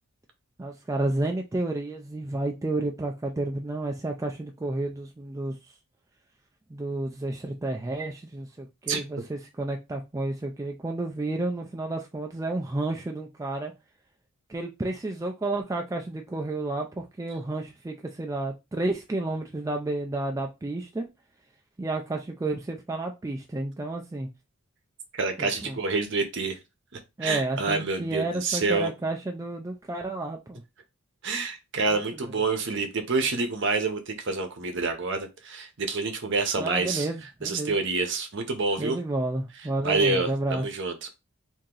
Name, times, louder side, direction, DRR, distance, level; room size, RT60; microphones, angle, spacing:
voice 1, 0.6-5.6 6.7-13.7 14.5-21.1 21.8-24.3 25.4-25.8 27.2-30.6 36.6-37.8 38.8-40.6, right 2 dB, 15° right, 0.3 m, -31 dB
voice 2, 25.1-26.6 26.9-28.9 31.2-37.1 37.4-39.0 39.8-41.1, right 3 dB, 55° right, 0.7 m, -27 dB
2.9 x 2.7 x 3.7 m
head